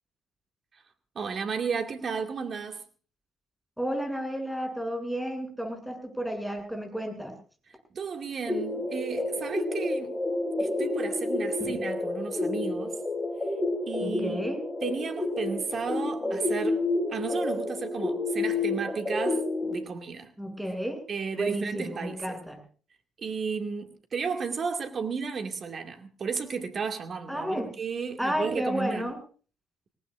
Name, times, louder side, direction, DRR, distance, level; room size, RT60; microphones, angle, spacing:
voice 1, 1.1-2.8 7.9-10.2 10.6-13.0 13.8-14.4 14.8-16.8 17.1-20.3 21.1-22.4 23.2-29.1, right 5 dB, 45° right, 5 dB, 2.4 m, -33 dB
voice 2, 3.8-7.3 11.6-11.8 14.0-14.6 20.4-21.0 21.3-22.6 27.3-27.7 28.2-29.2, equal, 5° right, 3 dB, 7.9 m, -32 dB
sound 1, 8.5-19.7, left 2 dB, 20° left, 6.8 m, -30 dB
25.5 x 18.5 x 2.6 m, 0.40 s
hypercardioid pair, 50°, 0 cm